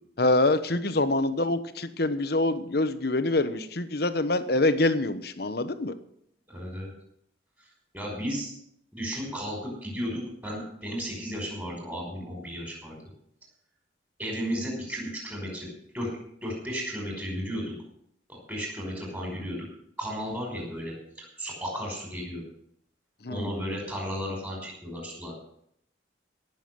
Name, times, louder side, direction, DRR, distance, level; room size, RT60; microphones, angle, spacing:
voice 1, 0.2-5.9 23.2-23.5, left 2 dB, 55° left, 11 dB, 1.1 m, -25 dB
voice 2, 6.5-6.9 7.9-8.5 8.9-13.0 14.2-15.7 15.9-16.1 16.4-17.7 18.3-19.6 20.0-22.4 23.3-25.4, equal, 10° right, -1 dB, 5.4 m, -34 dB
18.0 x 7.2 x 7.8 m, 0.70 s
head